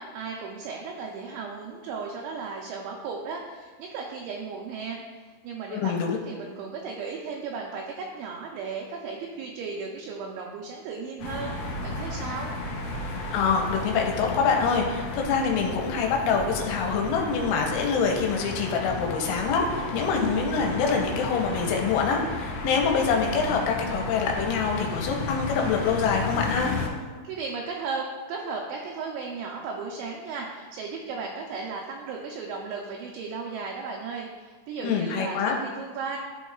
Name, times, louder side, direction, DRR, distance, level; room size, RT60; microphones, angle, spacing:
voice 1, 0.0-5.0 5.2-12.5 27.2-36.2, right 4 dB, 80° right, -1 dB, 2.7 m, -35 dB
voice 2, 5.7-6.2 13.3-26.7 34.8-35.6, left 5 dB, 85° left, 1 dB, 3.1 m, -25 dB
sound 1, 11.2-26.9, left 2 dB, 70° left, 2.2 m, -33 dB
13.0 x 4.5 x 2.4 m, 1.4 s
omnidirectional pair, 5.8 m